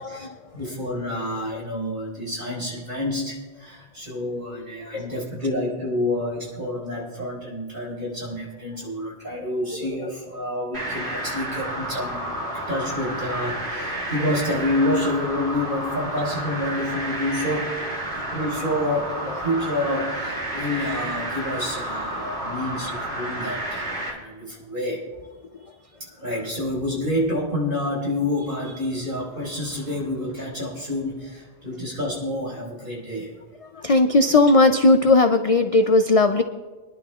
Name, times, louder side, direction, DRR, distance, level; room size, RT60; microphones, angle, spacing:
voice 1, 0.5-17.8 18.1-25.0 26.0-33.3, left 1 dB, 50° right, -4 dB, 5.2 m, -28 dB
sound 1, 10.7-24.1, right 1 dB, 70° right, 3.1 m, -30 dB
voice 2, 33.8-36.4, left 2 dB, 45° left, 7 dB, 0.4 m, -17 dB
26.0 x 11.0 x 2.4 m, 1.2 s
omnidirectional pair, 1.1 m